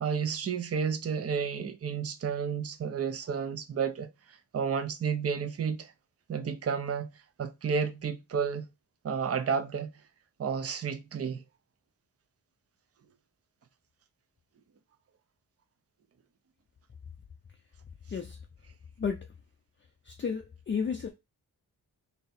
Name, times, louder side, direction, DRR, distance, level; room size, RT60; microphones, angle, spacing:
voice 1, 0.0-5.9 6.3-7.1 7.4-8.6 9.0-9.9 10.4-11.4, right 6 dB, 40° right, 0.5 m, -31 dB
voice 2, 20.1-21.1, left 6 dB, 30° left, 0.4 m, -32 dB
3.3 x 2.8 x 4.0 m
wide cardioid pair, 170°, 37 cm